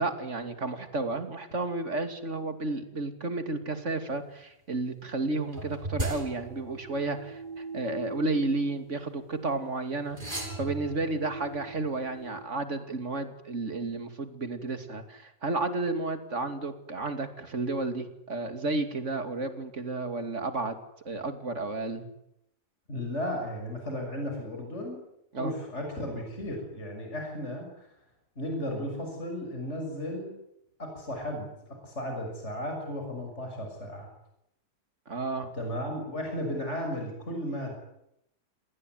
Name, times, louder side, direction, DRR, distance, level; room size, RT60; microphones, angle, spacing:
voice 1, 0.0-20.8 21.0-22.1 25.3-25.5 35.1-35.5, right 2 dB, 45° right, 8 dB, 3.0 m, -32 dB
sound 1, 5.5-9.3 10.1-12.4, right 2 dB, 30° right, 7.6 m, -38 dB
voice 2, 22.9-25.0 25.4-27.9 28.4-30.3 30.8-31.5 31.8-34.1 35.6-37.7, left 1 dB, 40° left, 3 dB, 6.7 m, -34 dB
28.5 x 19.5 x 9.4 m, 0.81 s
omnidirectional pair, 1.8 m